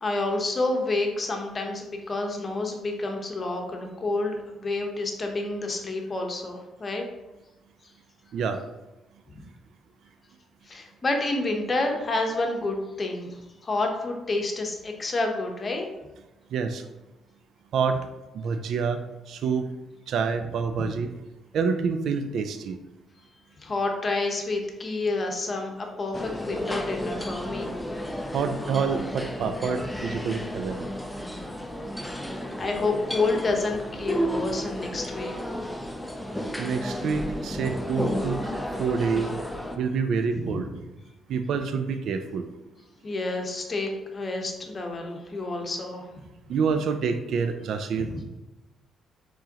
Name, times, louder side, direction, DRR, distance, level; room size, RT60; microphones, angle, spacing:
voice 1, 0.0-7.0 10.7-15.9 23.6-27.7 32.2-35.6 37.5-37.6 40.4-40.6 43.0-46.1 48.0-48.1, left 2 dB, 35° left, 2 dB, 0.9 m, -29 dB
voice 2, 16.5-16.8 17.7-18.0 18.3-19.7 20.1-21.1 21.5-22.8 28.3-30.9 36.6-38.5 38.8-39.3 39.8-40.7 41.3-42.5 46.5-48.1, right 5 dB, 70° right, 8 dB, 0.3 m, -27 dB
sound 1, 26.1-39.8, equal, 5° left, 0.5 m, -32 dB
4.7 x 3.7 x 2.9 m, 1.0 s
cardioid pair, 90°, 0 cm